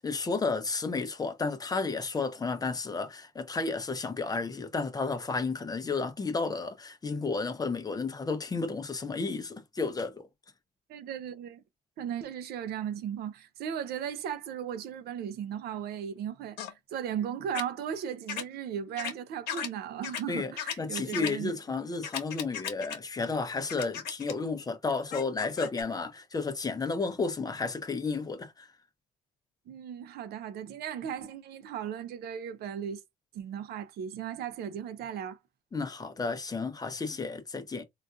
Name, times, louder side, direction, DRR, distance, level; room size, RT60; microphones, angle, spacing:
voice 1, 0.0-10.3 20.3-20.5 20.8-28.7 35.7-37.8, left 4 dB, 20° left, 0.6 m, -32 dB
voice 2, 10.9-11.6 12.0-16.6 16.9-21.5 29.7-33.0 33.3-35.4, right 9 dB, 70° right, 0.6 m, -36 dB
sound 1, 16.6-16.7 17.5-17.6 18.3-18.4 19.0-19.1 19.5-19.7 20.0-20.2 20.6-21.3 22.0-23.0 23.7-24.3 25.1-25.8, left 8 dB, 75° left, 1.0 m, -35 dB
3.8 x 2.5 x 2.3 m
cardioid pair, 110°, 17 cm